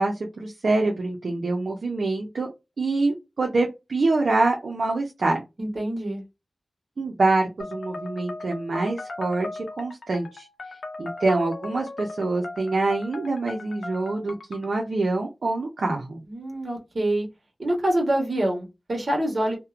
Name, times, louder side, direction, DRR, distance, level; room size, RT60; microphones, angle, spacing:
voice 1, 0.0-2.5 2.8-5.4 7.0-10.5 11.0-16.2, right 2 dB, 90° right, 0 dB, 0.6 m, -25 dB
voice 2, 5.6-6.2 16.2-17.3 17.6-19.6, right 1 dB, 60° right, 0 dB, 1.2 m, -26 dB
sound 1, 7.6-14.8, left 2 dB, 85° left, 0.5 m, -38 dB
2.7 x 2.1 x 2.4 m, 0.23 s
wide cardioid pair, 65°, 0 cm